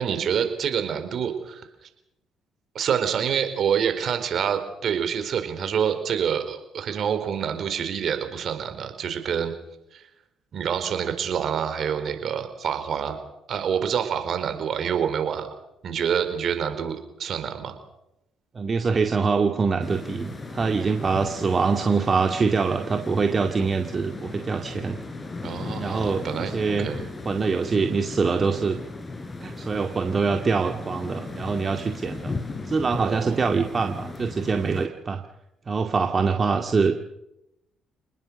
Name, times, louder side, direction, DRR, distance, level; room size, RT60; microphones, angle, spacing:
voice 1, 0.0-1.7 2.7-9.5 9.9-10.1 10.5-13.2 13.5-15.5 15.8-17.8 25.4-27.1 32.9-33.4, right 8 dB, 60° right, 8 dB, 4.4 m, -27 dB
voice 2, 18.5-25.0 25.8-26.9 27.3-28.8 29.4-32.3 32.6-35.2 35.7-36.9, right 5 dB, 40° right, 4 dB, 2.1 m, -24 dB
sound 1, 19.8-34.9, left 3 dB, 30° left, 4.7 m, -36 dB
28.0 x 20.0 x 6.5 m, 0.86 s
supercardioid pair, 60°, 0 cm